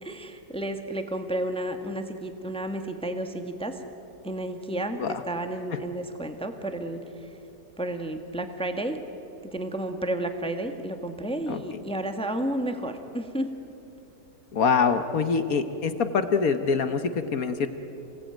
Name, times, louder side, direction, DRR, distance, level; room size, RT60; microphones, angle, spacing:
voice 1, 0.0-3.8 4.2-5.0 5.3-7.3 7.8-9.0 9.5-13.5, right 1 dB, 5° left, 6 dB, 1.3 m, -31 dB
voice 2, 14.5-17.7, left 5 dB, 60° left, 9 dB, 1.4 m, -24 dB
28.0 x 17.5 x 9.0 m, 3.0 s
omnidirectional pair, 1.8 m